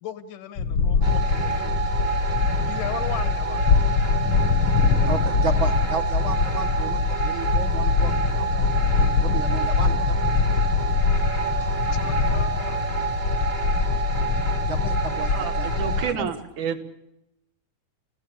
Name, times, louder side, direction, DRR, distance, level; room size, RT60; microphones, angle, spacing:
voice 1, 0.0-2.0 2.7-3.6 9.4-9.7 10.7-13.0, left 10 dB, 85° left, 11 dB, 2.9 m, -38 dB
sound 1, 0.6-16.0, left 5 dB, 55° left, 1.4 m, -23 dB
sound 2, 1.0-16.1, right 6 dB, 25° right, 1.6 m, -29 dB
voice 2, 5.1-8.9 9.2-10.2 14.6-15.7 16.0-16.4, right 4 dB, 55° right, 7 dB, 1.6 m, -33 dB
voice 3, 15.3-16.8, right 7 dB, 75° right, 7 dB, 2.9 m, -30 dB
29.0 x 15.5 x 8.6 m, 0.88 s
omnidirectional pair, 3.5 m